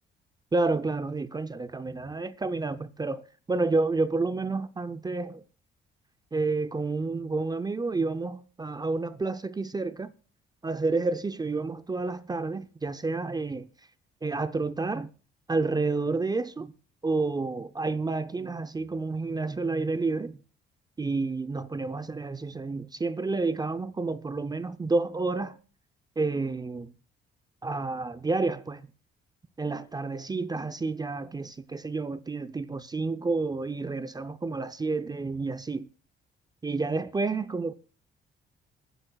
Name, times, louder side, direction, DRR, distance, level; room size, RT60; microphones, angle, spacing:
voice 1, 0.5-3.2 3.5-5.4 6.3-10.1 10.6-13.7 14.2-15.1 15.5-16.7 17.0-20.4 21.0-25.6 26.2-26.9 27.6-28.9 29.6-35.9 36.6-37.7, right 3 dB, 20° right, 0.6 m, -30 dB
26.5 x 10.0 x 2.3 m
cardioid pair, 90°, 20 cm